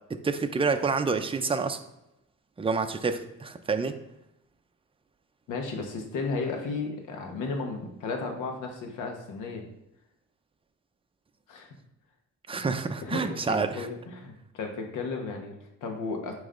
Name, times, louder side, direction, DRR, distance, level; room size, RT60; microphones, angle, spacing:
voice 1, 0.1-1.8 2.6-4.0 12.5-13.9, right 4 dB, 20° right, 7 dB, 0.6 m, -28 dB
voice 2, 5.5-9.6 11.5-11.7 12.5-12.6 13.0-16.3, left 4 dB, 85° left, 3 dB, 1.2 m, -34 dB
8.9 x 3.2 x 3.8 m, 0.88 s
cardioid pair, 90°, 30 cm